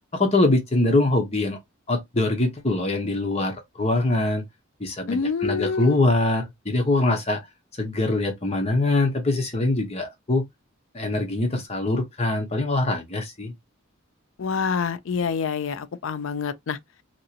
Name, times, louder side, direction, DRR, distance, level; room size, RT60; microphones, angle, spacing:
voice 1, 0.1-1.6 1.9-4.4 4.8-7.4 7.8-10.4 10.9-13.5, left 2 dB, 30° left, 0.8 m, -23 dB
voice 2, 5.1-6.0 14.4-16.8, left 5 dB, 70° left, 0.4 m, -26 dB
2.9 x 2.8 x 2.7 m
head